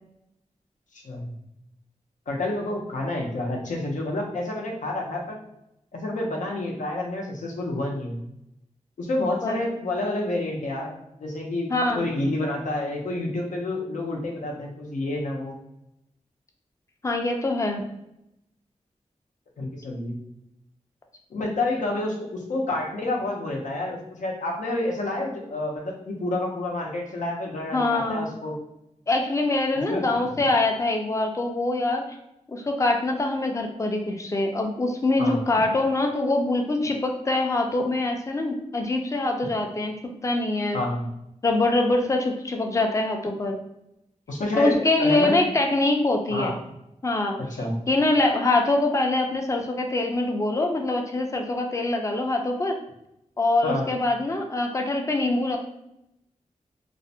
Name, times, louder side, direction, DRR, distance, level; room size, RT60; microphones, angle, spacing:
voice 1, 2.3-5.4 5.9-8.2 9.0-15.6 19.6-20.2 21.3-28.6 29.8-30.1 35.2-35.4 40.7-41.1 44.3-45.4 46.3-46.6 47.4-47.7 53.6-53.9, left 2 dB, 85° left, 0 dB, 0.5 m, -29 dB
voice 2, 11.7-12.1 17.0-17.8 27.7-28.3 29.1-32.0 32.5-39.9 40.2-40.8 41.4-43.6 44.6-46.5 47.0-47.4 47.9-52.8 53.4-55.6, left 2 dB, 25° left, 3 dB, 0.4 m, -24 dB
2.4 x 2.0 x 2.6 m, 0.82 s
wide cardioid pair, 110°, 12 cm